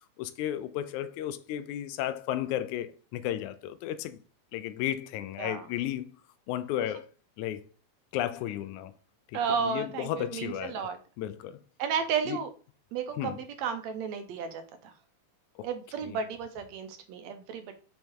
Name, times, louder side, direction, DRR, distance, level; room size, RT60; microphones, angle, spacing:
voice 1, 0.2-4.2 4.5-6.2 6.5-7.1 7.4-7.6 8.1-8.9 9.3-10.9 11.2-11.6 12.3-12.4 13.2-13.4 15.6-15.7 16.0-16.2, left 12 dB, 85° left, 2.0 m, -34 dB
voice 2, 9.3-11.0 11.8-12.5 12.9-14.9 15.6-17.7, right 6 dB, 75° right, 1.9 m, -33 dB
6.4 x 3.6 x 4.5 m
omnidirectional pair, 3.4 m